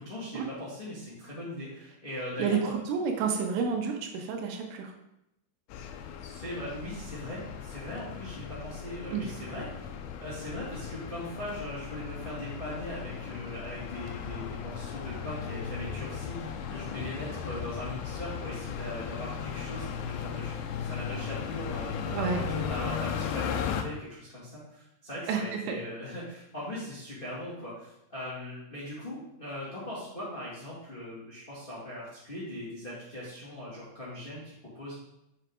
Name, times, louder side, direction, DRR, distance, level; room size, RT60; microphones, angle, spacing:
voice 1, 0.1-2.7 6.2-9.9 10.2-34.9, left 1 dB, 55° left, -8 dB, 0.5 m, -40 dB
voice 2, 2.4-4.9 9.1-9.3 22.1-22.4 25.3-25.8, right 6 dB, 85° right, 3 dB, 3.5 m, -30 dB
sound 1, 5.7-23.8, left 7 dB, 80° left, 2.5 m, -36 dB
8.0 x 5.9 x 3.7 m, 0.85 s
omnidirectional pair, 5.5 m